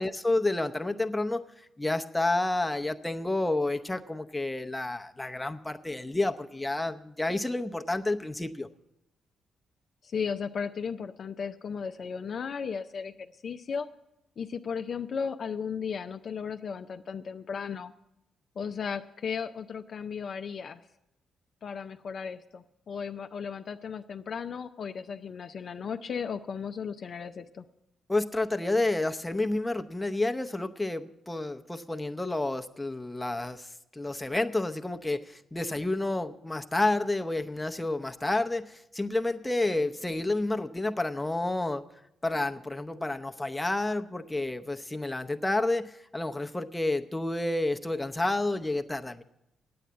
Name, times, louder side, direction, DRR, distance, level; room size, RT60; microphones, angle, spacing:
voice 1, 0.0-1.4 1.8-8.7 28.1-41.8 42.2-49.2, left 2 dB, 15° left, 7 dB, 0.7 m, -30 dB
voice 2, 10.1-13.9 14.4-17.9 18.6-20.8 21.6-27.6, left 6 dB, 60° left, 8 dB, 0.4 m, -35 dB
9.0 x 8.6 x 8.0 m, 0.85 s
supercardioid pair, 50°, 0 cm